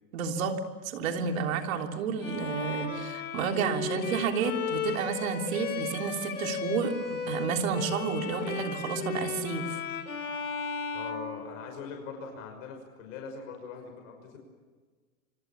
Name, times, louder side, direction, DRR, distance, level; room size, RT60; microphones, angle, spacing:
voice 1, 0.1-0.6 0.8-9.8, right 6 dB, 70° right, 4 dB, 3.5 m, -31 dB
Bowed string instrument, 2.2-12.0, left 6 dB, 90° left, 4.0 m, -35 dB
voice 2, 10.9-14.4, left 5 dB, 65° left, 3 dB, 6.1 m, -42 dB
25.5 x 25.5 x 7.3 m, 1.5 s
hypercardioid pair, 110°, 43 cm